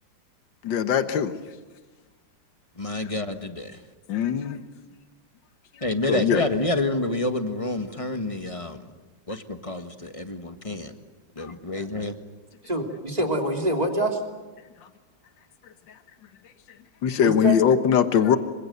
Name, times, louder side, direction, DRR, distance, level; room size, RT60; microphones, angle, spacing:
voice 1, 0.6-1.4 4.1-4.6 6.1-6.4 11.4-11.5 17.0-18.4, left 8 dB, 70° left, 10 dB, 2.0 m, -21 dB
voice 2, 2.8-3.8 5.8-8.9 9.3-10.9 11.4-12.1, left 2 dB, 20° left, 7 dB, 1.3 m, -28 dB
voice 3, 12.6-14.2 17.2-17.6, right 1 dB, 20° right, 2 dB, 3.2 m, -26 dB
26.5 x 25.0 x 8.0 m, 1.2 s
omnidirectional pair, 2.1 m